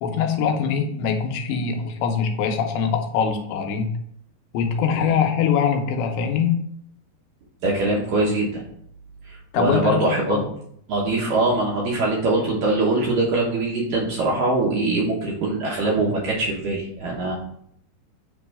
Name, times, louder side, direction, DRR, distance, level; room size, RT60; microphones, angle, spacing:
voice 1, 0.0-4.0 4.5-6.6 9.5-10.0 10.3-10.5, left 7 dB, 90° left, 5 dB, 3.0 m, -23 dB
voice 2, 7.6-8.6 9.3-10.4 10.9-17.3, right 2 dB, 75° right, -3 dB, 2.1 m, -22 dB
8.9 x 3.1 x 4.8 m, 0.69 s
omnidirectional pair, 5.0 m